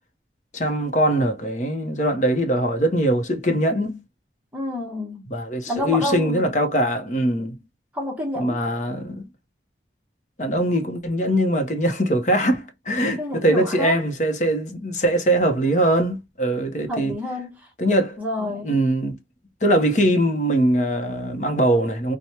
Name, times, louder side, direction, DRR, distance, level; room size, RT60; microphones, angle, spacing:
voice 1, 0.5-4.0 5.3-7.6 8.4-9.3 10.4-17.2 17.8-19.2 19.6-22.2, right 1 dB, 45° left, 0.9 m, -22 dB
voice 2, 4.5-5.3 5.7-6.4 7.9-8.6 13.2-14.0 16.9-17.6 18.2-18.7, left 1 dB, 10° right, 1.0 m, -28 dB
4.5 x 2.3 x 2.9 m
head